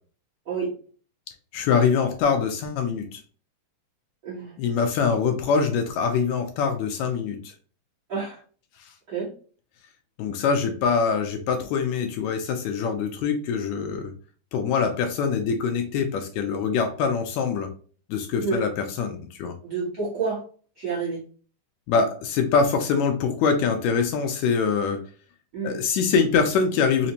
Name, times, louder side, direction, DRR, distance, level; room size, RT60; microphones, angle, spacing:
voice 1, 1.5-3.2 4.6-7.5 10.2-14.1 14.5-17.7 18.1-19.6 21.9-25.0 25.6-27.1, left 5 dB, 80° left, 5 dB, 1.7 m, -24 dB
voice 2, 8.1-8.4 9.1-9.3 18.4-18.6 19.6-20.4 20.8-21.2 25.5-25.8, right 4 dB, 55° right, -8 dB, 1.3 m, -28 dB
4.9 x 2.0 x 2.7 m, 0.40 s
omnidirectional pair, 3.4 m